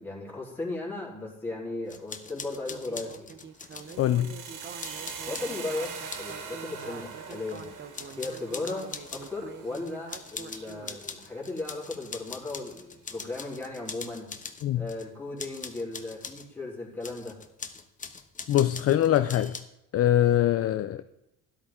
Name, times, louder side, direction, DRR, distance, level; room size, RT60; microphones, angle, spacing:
voice 1, 0.0-3.3 5.3-5.9 6.2-7.7 8.2-14.3 14.7-17.4, left 2 dB, 5° left, 3.7 m, -36 dB
sound 1, 1.9-4.0 4.5-6.4 6.7-7.7 7.9-9.3 9.7-15.1 15.4-16.5 17.0-19.6, left 5 dB, 25° left, 1.0 m, -42 dB
Speech synthesizer, 2.7-11.0, right 6 dB, 35° right, 0.9 m, -46 dB
sound 2, 3.7-11.8, right 6 dB, 70° right, 1.6 m, -43 dB
voice 2, 4.0-4.3 14.6-14.8 18.5-19.5 19.9-21.0, left 12 dB, 45° left, 0.5 m, -23 dB
12.5 x 11.0 x 3.7 m
cardioid pair, 110°, 33 cm